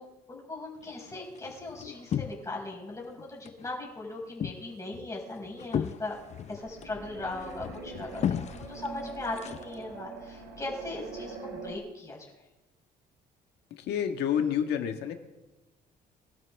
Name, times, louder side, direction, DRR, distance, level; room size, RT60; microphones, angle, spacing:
voice 1, 0.0-6.2 6.5-12.3, left 2 dB, 20° left, -2 dB, 4.9 m, -39 dB
sound 1, 0.8-2.7 3.0-3.7 4.0-10.0, left 9 dB, 40° left, 0.6 m, -36 dB
sound 2, 6.0-11.7, right 4 dB, 75° right, 3.0 m, -43 dB
voice 2, 13.7-15.1, left 8 dB, 80° left, 6 dB, 1.6 m, -29 dB
23.5 x 12.5 x 3.5 m, 1.1 s
cardioid pair, 110°, 17 cm